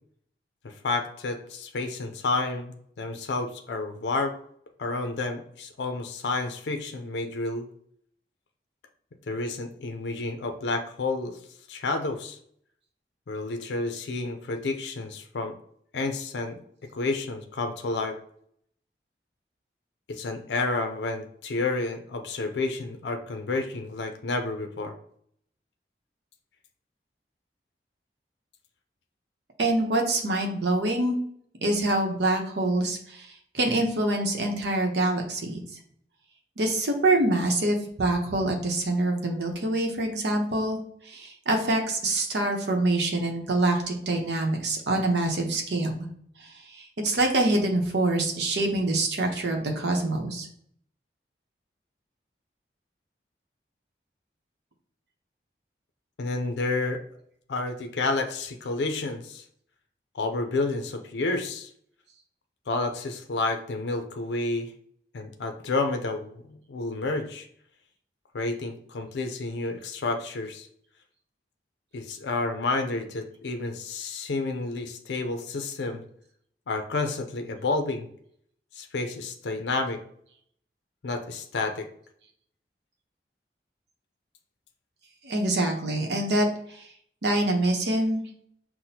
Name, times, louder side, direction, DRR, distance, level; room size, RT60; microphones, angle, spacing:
voice 1, 0.6-4.4 4.8-7.6 9.3-11.3 11.7-12.4 13.3-15.5 15.9-16.6 16.9-18.2 20.1-24.9 56.2-57.0 57.5-59.4 60.1-61.7 62.7-64.7 65.1-67.5 68.3-70.7 71.9-76.0 76.7-78.1 78.7-80.0 81.0-81.9, left 3 dB, 80° left, 5 dB, 0.4 m, -30 dB
voice 2, 29.6-31.2 31.6-35.6 36.6-40.8 41.1-46.1 46.4-50.5 85.2-86.5 87.2-88.2, right 2 dB, 80° right, 2 dB, 0.8 m, -25 dB
5.9 x 2.1 x 2.7 m, 0.65 s
head